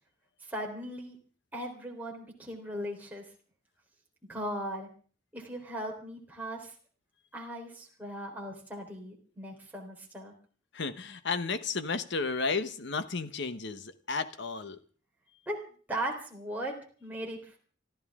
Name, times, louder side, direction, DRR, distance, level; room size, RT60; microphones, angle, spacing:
voice 1, 0.4-1.2 1.5-3.2 4.3-4.9 5.3-6.7 7.3-10.3 15.5-15.6 15.9-17.6, right 1 dB, 10° right, -2 dB, 3.8 m, -38 dB
voice 2, 10.7-14.8, left 4 dB, 60° left, 11 dB, 1.1 m, -33 dB
25.5 x 14.0 x 3.7 m, 0.43 s
head